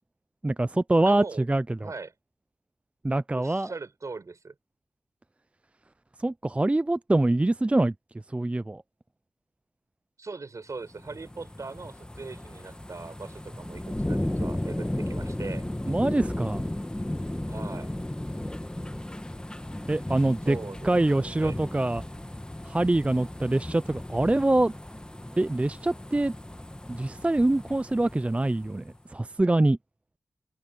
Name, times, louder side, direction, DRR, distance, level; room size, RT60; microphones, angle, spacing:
voice 1, 0.4-1.9 3.0-3.7 6.2-7.9 8.3-8.8 15.9-16.6 19.9-20.6 20.8-22.0 22.7-24.7 25.4-26.3 26.9-28.8 29.1-29.8, right 2 dB, 20° right, 0.4 m, -24 dB
voice 2, 1.0-1.5 1.8-2.1 3.3-4.5 10.2-13.8 14.1-15.7 17.5-17.9 20.4-21.6, right 4 dB, 60° right, 4.8 m, -40 dB
sound 1, 10.8-29.0 29.4-29.5, left 1 dB, 15° left, 1.4 m, -35 dB
cardioid pair, 50°, 6 cm